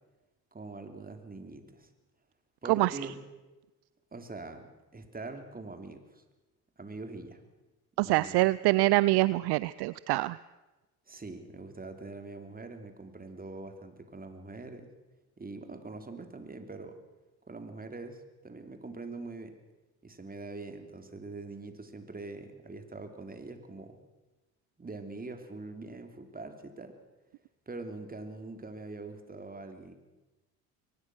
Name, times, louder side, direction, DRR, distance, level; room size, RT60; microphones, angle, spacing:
voice 1, 0.5-1.9 2.6-3.2 4.1-6.2 6.8-7.4 8.0-8.4 11.1-14.9 15.4-17.0 17.5-19.5 20.0-24.0 24.8-27.0 27.6-29.9, right 3 dB, 20° right, 7 dB, 3.4 m, -43 dB
voice 2, 2.7-3.0 8.0-10.4, right 20 dB, 60° right, 19 dB, 0.6 m, -25 dB
23.0 x 19.5 x 6.3 m, 1.1 s
hypercardioid pair, 75°, 46 cm